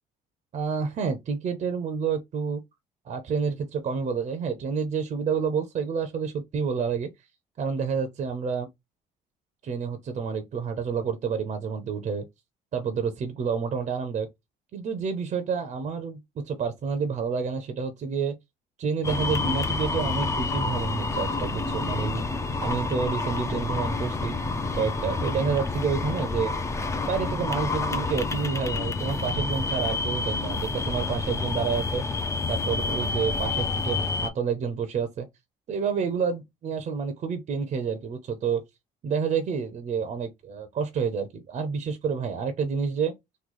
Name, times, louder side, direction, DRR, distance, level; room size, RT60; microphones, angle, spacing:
voice 1, 0.5-2.6 3.0-7.1 7.6-8.7 9.6-12.3 12.7-14.3 14.7-18.3 18.8-22.2 22.6-24.3 24.7-26.5 27.1-32.0 32.5-35.3 35.7-38.6 39.0-43.1, right 6 dB, 45° right, 0.6 m, -29 dB
sound 1, 19.0-34.3, left 3 dB, 15° left, 0.5 m, -28 dB
3.1 x 2.2 x 3.7 m
cardioid pair, 110°, 17 cm